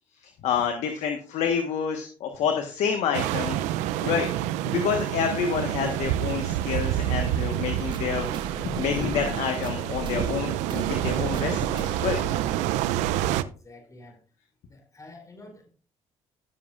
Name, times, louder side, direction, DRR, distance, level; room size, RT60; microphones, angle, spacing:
voice 1, 0.4-3.6 4.0-4.3 4.6-12.2, left 7 dB, 75° left, 1.4 m, -28 dB
sound 1, 3.1-13.4, right 13 dB, 90° right, 0.5 m, -28 dB
voice 2, 3.8-4.2 13.0-14.2 14.6-15.7, left 1 dB, 30° left, 5.1 m, -47 dB
sound 2, 7.5-12.6, right 4 dB, 40° right, 1.6 m, -38 dB
16.5 x 7.4 x 2.5 m
supercardioid pair, 75°, 12 cm